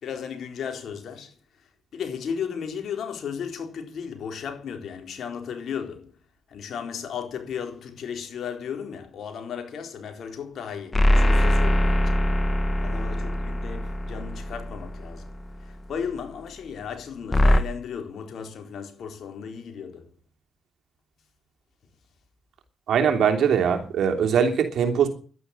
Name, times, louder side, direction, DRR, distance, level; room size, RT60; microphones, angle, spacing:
voice 1, 0.0-1.3 1.9-6.1 6.5-12.2 12.8-15.3 15.6-20.1, left 7 dB, 70° left, 4.2 m, -35 dB
sound 1, 10.9-15.5 17.3-17.6, left 1 dB, 30° left, 2.0 m, -22 dB
voice 2, 22.9-25.1, right 7 dB, 75° right, 3.1 m, -21 dB
12.0 x 10.0 x 9.5 m
supercardioid pair, 55°, 0 cm